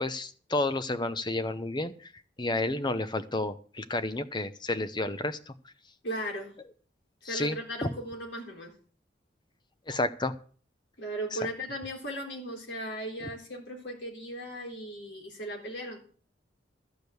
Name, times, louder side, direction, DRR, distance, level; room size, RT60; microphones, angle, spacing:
voice 1, 0.0-2.1 2.4-5.5 7.2-7.6 7.8-7.9 9.9-10.3, left 2 dB, 25° left, 11 dB, 0.8 m, -31 dB
voice 2, 6.0-6.5 7.2-8.7 11.0-16.0, equal, 70° left, 1 dB, 3.7 m, -37 dB
14.0 x 5.1 x 7.9 m, 0.44 s
head